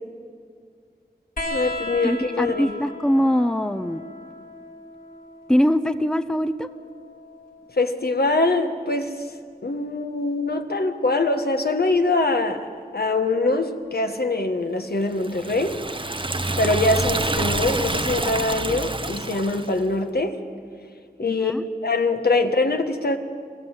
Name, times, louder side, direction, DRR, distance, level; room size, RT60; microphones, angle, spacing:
sound 1, 1.4-8.4 9.8-10.6 11.9-12.0, left 2 dB, 55° left, 2.7 m, -37 dB
voice 1, 1.5-2.7 7.8-9.3 9.6-12.7 12.9-15.8 16.6-20.4 21.2-21.5 21.8-23.2, left 2 dB, 70° left, 6 dB, 1.4 m, -23 dB
voice 2, 2.0-4.1 5.5-6.7 21.2-21.6, equal, 5° left, 12 dB, 0.7 m, -22 dB
Liquid, 15.2-19.8, right 2 dB, 30° right, 0.9 m, -27 dB
24.0 x 15.5 x 7.4 m, 2.1 s
wide cardioid pair, 40°, 17 cm